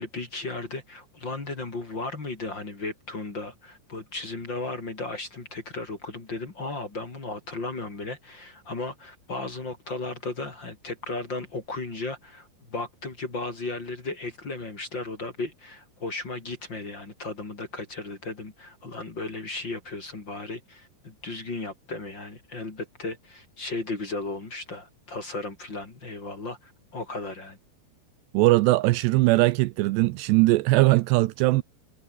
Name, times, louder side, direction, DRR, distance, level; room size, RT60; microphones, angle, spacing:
voice 1, 0.0-27.6, left 3 dB, 25° left, 3.5 m, -35 dB
voice 2, 28.3-31.6, right 20 dB, 80° right, 2.6 m, -20 dB
omnidirectional pair, 5.2 m